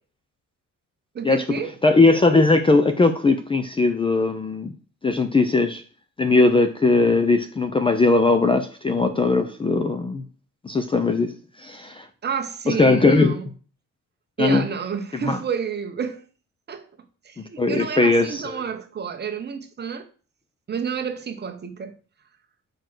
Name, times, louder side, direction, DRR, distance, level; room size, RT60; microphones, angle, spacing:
voice 1, 1.1-1.7 12.2-13.5 14.4-16.2 16.7-16.9 17.2-20.1 20.7-21.9, right 7 dB, 30° right, 0.9 m, -30 dB
voice 2, 1.8-4.7 5.0-5.8 6.2-10.2 10.6-11.3 11.6-12.1 12.7-13.4 14.4-14.6 15.2-15.4 17.6-18.5, left 3 dB, 15° left, 0.4 m, -19 dB
6.7 x 4.8 x 6.0 m
cardioid pair, 180°, 33 cm